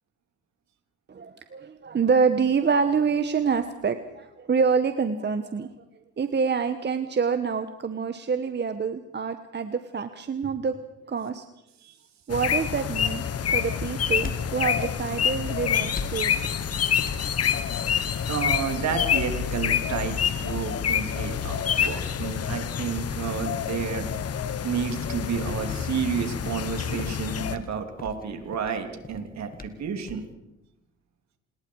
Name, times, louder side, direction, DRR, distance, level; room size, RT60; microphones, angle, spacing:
voice 1, 1.1-5.7 6.2-10.7 11.1-11.4 12.3-16.4, right 5 dB, 35° right, 9 dB, 1.2 m, -26 dB
sound 1, 12.3-27.6, left 8 dB, 55° left, 1.4 m, -27 dB
sound 2, 13.6-30.3, left 3 dB, 30° left, 1.9 m, -45 dB
voice 2, 18.3-24.1 24.6-30.3, right 6 dB, 65° right, 6 dB, 3.2 m, -31 dB
27.0 x 20.5 x 4.8 m, 0.93 s
cardioid pair, 90°, 30 cm